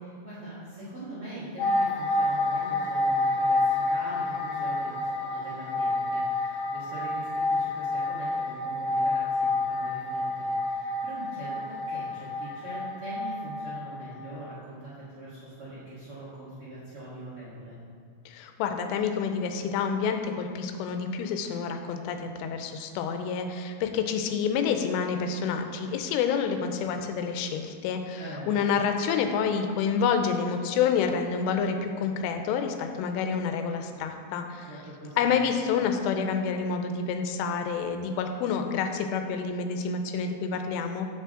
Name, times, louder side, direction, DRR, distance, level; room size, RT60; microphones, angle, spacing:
voice 1, 0.0-17.8 28.1-28.5 34.6-35.4, right 1 dB, 75° right, -11 dB, 1.2 m, -42 dB
sound 1, 1.6-14.1 14.4-14.5, left 2 dB, 65° left, 3.1 m, -28 dB
voice 2, 18.3-28.2 28.5-34.7 35.2-41.1, left 6 dB, 85° left, 6 dB, 3.1 m, -28 dB
8.2 x 6.7 x 3.7 m, 2.2 s
omnidirectional pair, 5.6 m